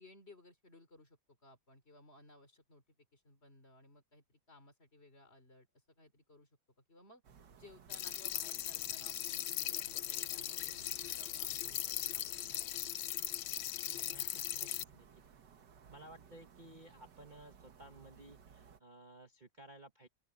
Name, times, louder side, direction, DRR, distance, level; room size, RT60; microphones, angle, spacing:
voice 1, 0.0-6.5 6.9-7.2 7.6-12.7 13.0-13.2, left 1 dB, 30° left, 3.7 m, -60 dB
sound 1, 7.2-18.8, right 7 dB, 60° right, 1.9 m, -60 dB
sound 2, 7.9-14.8, left 13 dB, 80° left, 1.6 m, -39 dB
voice 2, 13.8-15.1 15.9-20.1, right 2 dB, 25° right, 1.7 m, -56 dB
open air
omnidirectional pair, 2.2 m